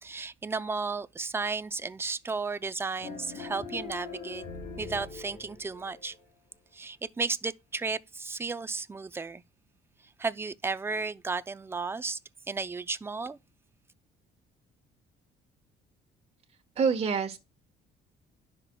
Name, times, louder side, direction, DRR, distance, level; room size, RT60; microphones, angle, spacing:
voice 1, 0.0-4.4 4.8-6.2 6.7-9.4 10.2-12.2 12.5-13.4, right 4 dB, 15° right, 0.4 m, -34 dB
sound 1, 3.0-6.2, left 4 dB, 85° left, 3.0 m, -42 dB
voice 2, 16.8-17.4, right 6 dB, 40° right, 1.2 m, -26 dB
10.5 x 5.9 x 2.2 m
cardioid pair, 110°, 17 cm